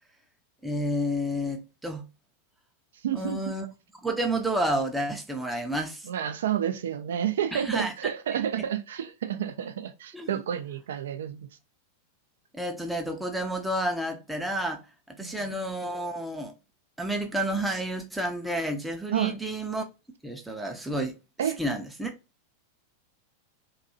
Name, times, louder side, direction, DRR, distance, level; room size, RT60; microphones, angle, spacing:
voice 1, 0.6-2.0 3.1-3.7 4.0-6.1 7.5-8.1 8.6-8.7 10.1-10.3 12.5-14.8 15.1-16.5 17.0-19.8 20.2-21.1 21.4-22.1, right 1 dB, 5° right, 0.5 m, -30 dB
voice 2, 3.0-3.4 6.1-11.5 15.2-15.5 19.1-19.4 21.4-21.6, right 9 dB, 60° right, 0.4 m, -30 dB
2.7 x 2.3 x 2.6 m
figure-of-eight pair, 90°, 0 cm